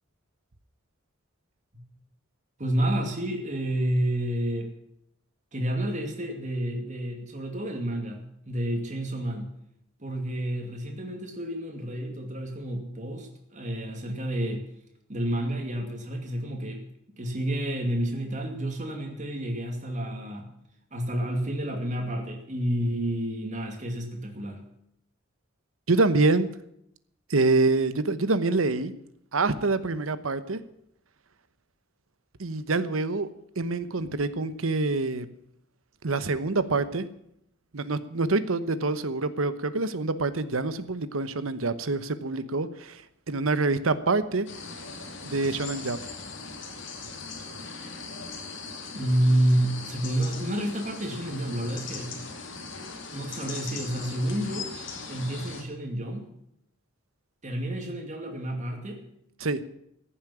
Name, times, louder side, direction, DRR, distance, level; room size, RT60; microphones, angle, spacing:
voice 1, 2.6-4.7 5.5-9.5 10.0-14.7 15.1-16.8 17.2-20.5 20.9-24.7 48.9-52.1 53.1-54.7 55.1-56.3 57.4-59.1, right 1 dB, 40° right, 2 dB, 2.5 m, -29 dB
voice 2, 25.9-26.5 27.3-28.9 29.3-30.6 32.4-33.3 33.6-35.3 36.0-37.1 37.7-44.5 45.2-46.0 59.4-59.6, right 3 dB, 90° right, 14 dB, 1.0 m, -26 dB
sound 1, 44.5-55.6, left 4 dB, 65° left, 2.5 m, -39 dB
15.0 x 7.3 x 9.9 m, 0.76 s
head